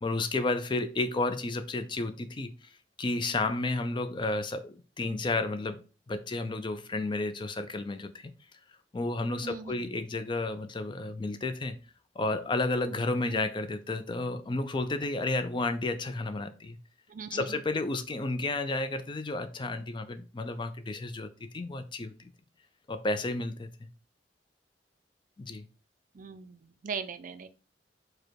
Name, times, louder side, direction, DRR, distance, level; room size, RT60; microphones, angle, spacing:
voice 1, 0.0-2.7 3.0-8.3 8.9-11.8 12.2-16.8 17.3-22.1 22.9-23.9 25.4-25.7, left 2 dB, 25° left, 0.4 m, -32 dB
voice 2, 9.4-9.9 13.2-13.5 17.1-17.6 26.1-27.5, right 6 dB, 50° right, 0.4 m, -40 dB
4.8 x 2.2 x 4.5 m
head